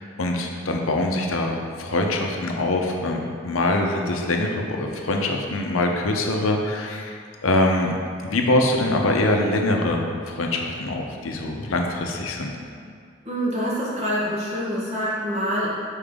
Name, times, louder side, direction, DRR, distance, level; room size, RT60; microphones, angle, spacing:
voice 1, 0.0-7.2 7.4-7.9 8.2-12.5, left 2 dB, 85° left, 2 dB, 0.7 m, -23 dB
voice 2, 13.2-15.7, equal, 30° right, -7 dB, 1.1 m, -26 dB
6.8 x 4.5 x 3.6 m, 2.2 s
head